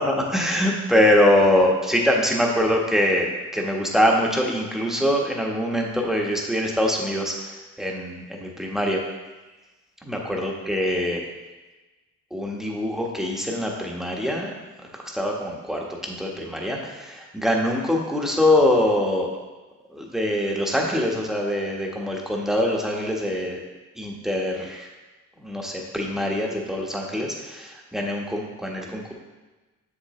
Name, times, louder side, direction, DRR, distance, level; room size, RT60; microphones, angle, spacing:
voice 1, 0.0-7.3 7.8-9.0 10.0-11.2 12.3-14.5 15.1-19.3 19.9-23.6 24.0-24.9 25.4-29.1, left 1 dB, ahead, -1 dB, 1.3 m, -23 dB
7.3 x 6.7 x 3.2 m, 1.2 s
cardioid pair, 90°, 30 cm